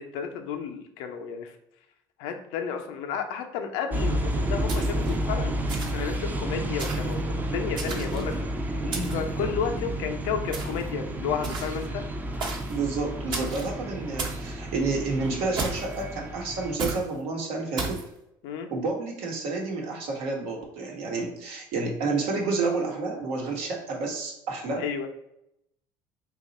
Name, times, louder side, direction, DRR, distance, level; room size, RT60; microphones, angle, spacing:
voice 1, 0.0-1.6 2.2-5.5 5.9-8.5 8.7-8.8 9.1-12.0 18.4-18.7 24.8-25.1, left 7 dB, 80° left, 4 dB, 0.5 m, -32 dB
sound 1, 3.9-16.7, right 1 dB, 15° right, 0.5 m, -31 dB
sound 2, 4.7-5.2 5.7-6.1 6.8-7.1 7.8-8.3 8.9-9.3 10.5-10.9 11.4-11.9 12.4-12.8 13.3-13.7 14.2-14.5 15.6-16.0 16.8-17.1 17.8-18.1, right 3 dB, 50° right, 0.9 m, -33 dB
voice 2, 8.8-9.2 12.7-18.0 18.7-24.8, right 3 dB, 75° right, 1 dB, 1.0 m, -30 dB
2.8 x 2.4 x 4.0 m, 0.82 s
supercardioid pair, 90°, 10 cm